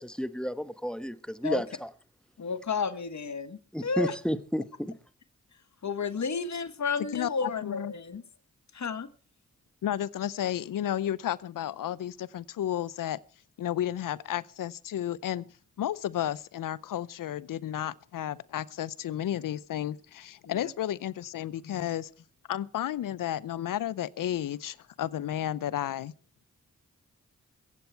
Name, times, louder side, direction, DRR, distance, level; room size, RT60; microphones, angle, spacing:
voice 1, 0.0-1.9 3.7-4.9, equal, 5° left, 1.2 m, -32 dB
voice 2, 2.4-4.1 5.8-8.2 8.7-9.1 20.5-20.7 21.7-21.9, left 5 dB, 60° left, 1.3 m, -32 dB
voice 3, 7.1-7.9 9.8-13.2 13.6-15.5 15.8-22.1 22.5-26.1, left 11 dB, 85° left, 0.6 m, -32 dB
23.0 x 8.3 x 4.5 m
cardioid pair, 45°, 32 cm